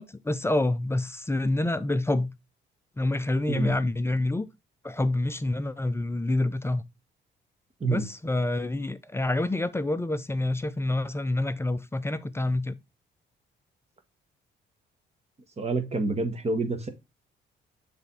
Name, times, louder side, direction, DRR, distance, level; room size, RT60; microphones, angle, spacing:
voice 1, 0.0-2.3 3.0-4.5 4.8-6.8 7.9-12.8, left 2 dB, 10° left, 0.5 m, -27 dB
voice 2, 15.6-16.9, right 3 dB, 30° right, 1.4 m, -28 dB
6.8 x 3.5 x 4.0 m
cardioid pair, 90°, 20 cm